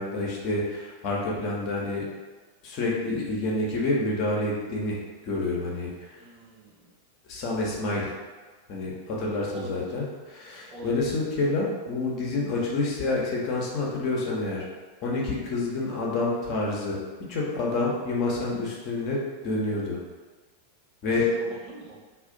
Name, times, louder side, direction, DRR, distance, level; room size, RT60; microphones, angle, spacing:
voice 1, 0.0-2.0 2.6-5.0 5.3-5.9 7.3-8.1 8.7-14.6 15.0-17.0 17.3-20.0 21.0-21.3, left 2 dB, 40° left, -4 dB, 0.7 m, -28 dB
voice 2, 6.2-6.9 9.5-9.9 10.7-11.1 21.0-22.0, right 2 dB, 30° right, -6 dB, 1.0 m, -43 dB
2.4 x 2.2 x 3.8 m, 1.3 s
figure-of-eight pair, 90°, 0 cm